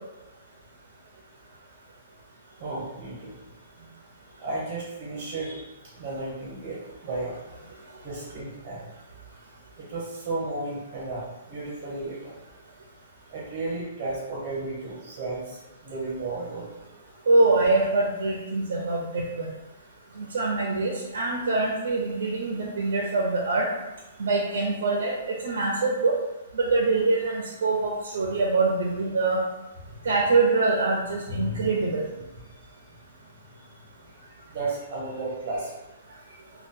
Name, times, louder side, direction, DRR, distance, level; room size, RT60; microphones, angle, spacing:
voice 1, 2.6-3.3 3.9-4.0 4.4-7.5 8.0-8.9 9.8-12.3 13.3-16.7 31.3-31.9 34.1-35.8 36.3-36.4, right 2 dB, 25° right, -6 dB, 0.7 m, -34 dB
voice 2, 17.3-19.5 20.2-23.7 24.2-26.2 26.5-29.4 30.0-32.1, right 3 dB, 75° right, -1 dB, 0.6 m, -24 dB
2.7 x 2.2 x 3.6 m, 1.0 s
hypercardioid pair, 180°, 0 cm